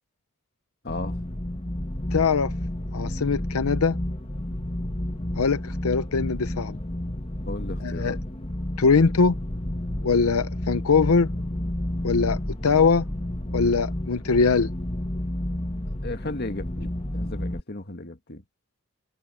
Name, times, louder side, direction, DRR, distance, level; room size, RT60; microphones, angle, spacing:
voice 1, 0.8-1.2 7.5-8.2 16.0-18.4, left 2 dB, 50° left, 2.0 m, -35 dB
sound 1, 0.9-17.6, left 1 dB, 25° left, 1.6 m, -31 dB
voice 2, 2.1-2.5 2.9-4.0 5.4-6.8 7.8-8.2 8.8-9.4 10.0-11.3 12.0-13.1 13.5-14.7, left 4 dB, 90° left, 0.7 m, -22 dB
head